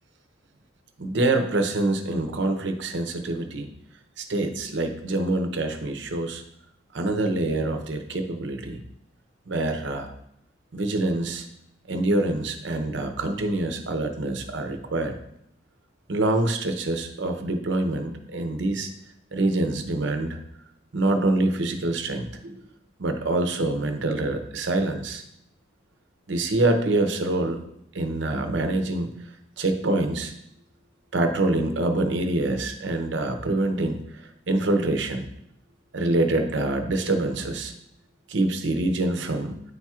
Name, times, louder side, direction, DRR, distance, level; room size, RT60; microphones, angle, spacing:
voice 1, 1.0-3.7 4.2-6.4 6.9-8.8 9.5-10.1 10.7-11.5 11.9-15.2 16.1-18.9 19.3-20.4 20.9-22.6 23.0-25.2 26.3-27.6 27.9-29.1 29.6-30.3 31.1-35.3 35.9-37.7 38.3-39.6, right 2 dB, 65° right, 5 dB, 0.7 m, -25 dB
9.6 x 4.3 x 2.4 m, 0.75 s
head